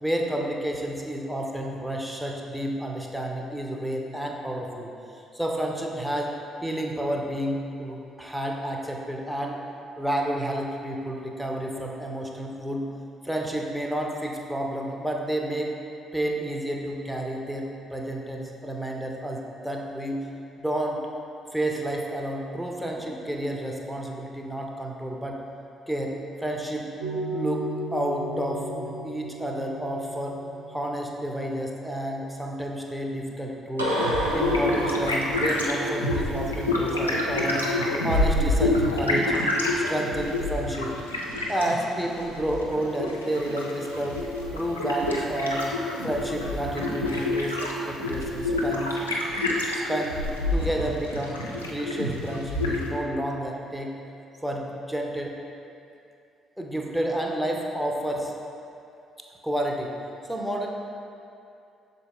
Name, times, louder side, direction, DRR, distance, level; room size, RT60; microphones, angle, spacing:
voice 1, 0.0-4.9 5.3-6.3 6.6-9.6 10.0-12.8 13.2-15.7 16.1-20.2 20.6-21.0 21.5-25.4 25.9-26.9 27.3-30.4 30.7-33.9 34.3-37.6 38.0-39.3 39.9-40.9 41.5-44.2 44.5-45.7 46.0-49.0 49.7-50.2 50.5-51.4 51.7-53.9 54.4-55.3 56.6-58.3 59.4-59.9 60.3-60.7, right 1 dB, ahead, 0 dB, 0.8 m, -30 dB
sound 1, 27.0-31.3 33.8-36.1, equal, 85° right, 0.6 m, -32 dB
sound 2, 33.9-52.9, left 1 dB, 85° left, 0.5 m, -27 dB
6.5 x 4.1 x 3.8 m, 2.6 s
figure-of-eight pair, 45°, 0 cm